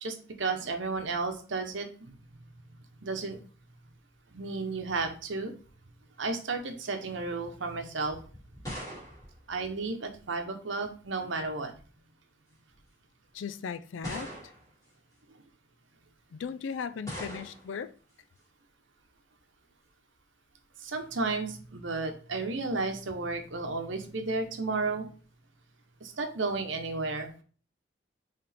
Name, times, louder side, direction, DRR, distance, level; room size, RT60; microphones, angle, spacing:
voice 1, 0.0-2.2 3.0-3.4 4.3-5.5 6.2-8.2 9.5-11.7 20.8-25.1 26.0-27.3, right 3 dB, 80° right, 0.9 m, -33 dB
sound 1, 8.0-10.4 11.4-11.9 12.7-12.8 14.0-14.8 17.1-17.8, equal, 15° left, 2.2 m, -42 dB
voice 2, 13.3-14.3 16.3-17.9, left 6 dB, 85° left, 0.4 m, -37 dB
4.7 x 3.3 x 3.4 m
head